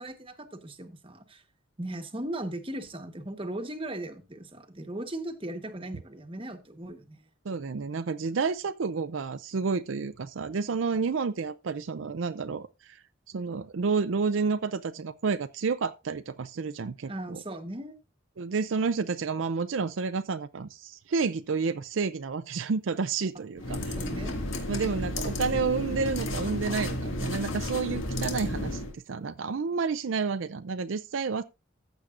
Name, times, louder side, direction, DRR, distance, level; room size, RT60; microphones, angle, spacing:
voice 1, 0.0-1.4 1.8-7.2 17.1-18.0 23.5-24.4, right 1 dB, 25° right, 1.1 m, -38 dB
voice 2, 7.5-13.0 13.3-17.4 18.4-23.8 24.7-31.4, right 5 dB, 70° right, 0.5 m, -30 dB
sound 1, 23.6-28.9, left 1 dB, 75° left, 2.0 m, -32 dB
14.5 x 8.0 x 2.5 m
head